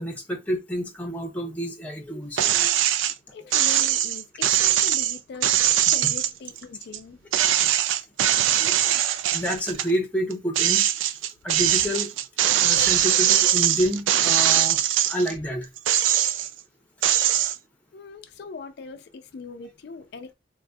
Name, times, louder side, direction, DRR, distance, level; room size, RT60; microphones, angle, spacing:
voice 1, 0.0-2.7 8.5-9.0 9.3-10.9 11.4-12.1 12.6-14.8 15.1-15.7, equal, 5° left, 0.6 m, -29 dB
sound 1, 2.4-3.1 3.5-7.0 7.3-9.9 10.3-15.3 15.8-16.6 17.0-17.6, right 11 dB, 75° right, 0.3 m, -21 dB
voice 2, 3.0-7.2 17.9-20.3, left 4 dB, 55° left, 0.4 m, -41 dB
3.9 x 2.6 x 2.2 m
head